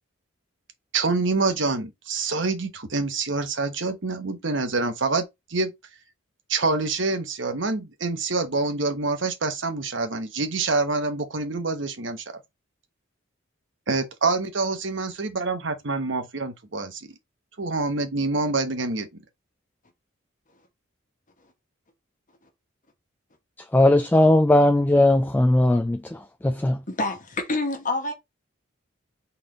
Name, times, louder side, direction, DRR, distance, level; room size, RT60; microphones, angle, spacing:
voice 1, 0.9-5.7 6.5-12.2 13.9-17.1 17.6-19.1, right 3 dB, 65° right, 1.1 m, -26 dB
voice 2, 23.7-26.8, left 1 dB, 10° left, 0.3 m, -18 dB
voice 3, 26.9-28.1, left 2 dB, 40° left, 1.3 m, -27 dB
4.1 x 3.4 x 3.7 m
head